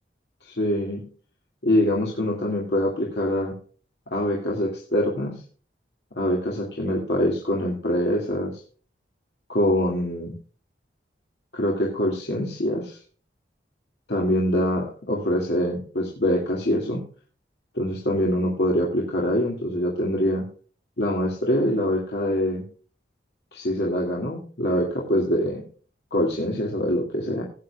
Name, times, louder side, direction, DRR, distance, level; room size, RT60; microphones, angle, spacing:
voice 1, 0.5-1.0 1.6-3.5 4.1-5.3 6.2-8.6 9.5-10.3 11.5-13.0 14.1-17.0 17.7-20.4 21.0-22.6 23.5-25.6 26.1-27.4, equal, 65° left, -2 dB, 2.3 m, -24 dB
18.5 x 8.7 x 2.3 m, 0.41 s
head